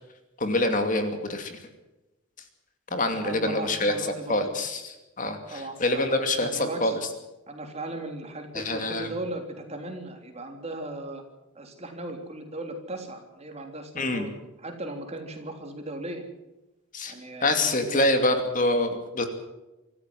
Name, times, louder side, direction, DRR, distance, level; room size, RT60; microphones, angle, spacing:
voice 1, 0.4-1.6 2.9-3.9 4.3-5.4 5.8-7.0 8.5-9.1 14.0-14.3 16.9-17.1 17.4-19.2, left 1 dB, 40° left, 6 dB, 2.6 m, -25 dB
voice 2, 3.1-4.4 5.5-7.0 7.5-11.2 11.6-14.3 14.6-16.2 17.0-18.4, right 2 dB, 30° right, 4 dB, 3.4 m, -37 dB
25.5 x 15.0 x 7.7 m, 1.0 s
head